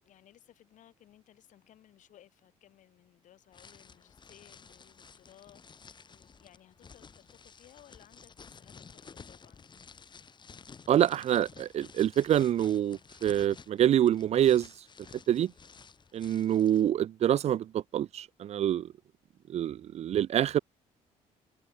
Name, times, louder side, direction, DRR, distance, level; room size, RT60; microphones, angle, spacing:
voice 1, 0.0-9.7, left 12 dB, 70° left, 7.2 m, -60 dB
sound 1, 3.5-16.9, left 5 dB, 35° left, 2.0 m, -53 dB
voice 2, 10.9-14.7 15.3-15.5 16.1-18.9 19.5-20.6, right 11 dB, 55° right, 0.5 m, -26 dB
cardioid pair, 85°, 13 cm